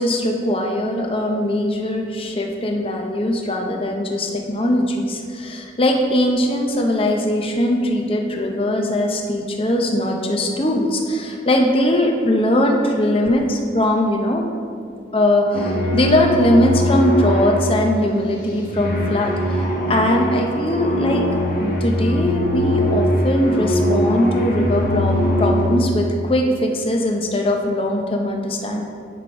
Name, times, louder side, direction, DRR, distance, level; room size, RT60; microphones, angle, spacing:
voice 1, 0.0-14.5 15.1-21.2 21.6-28.8, left 1 dB, 30° left, 2 dB, 0.7 m, -20 dB
sound 1, 15.5-26.1, equal, 50° left, 1.1 m, -21 dB
10.0 x 3.9 x 4.8 m, 2.3 s
head